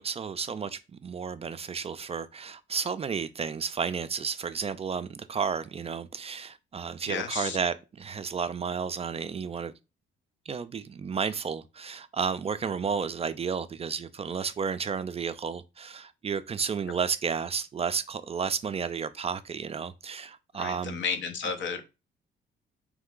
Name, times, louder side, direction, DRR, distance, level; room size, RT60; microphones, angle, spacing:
voice 1, 0.0-9.7 10.5-21.0 21.4-21.5, right 6 dB, 30° right, 0.3 m, -32 dB
voice 2, 7.1-7.6 20.6-21.8, left 6 dB, 70° left, 0.9 m, -32 dB
3.6 x 3.2 x 3.7 m
cardioid pair, 90°, 20 cm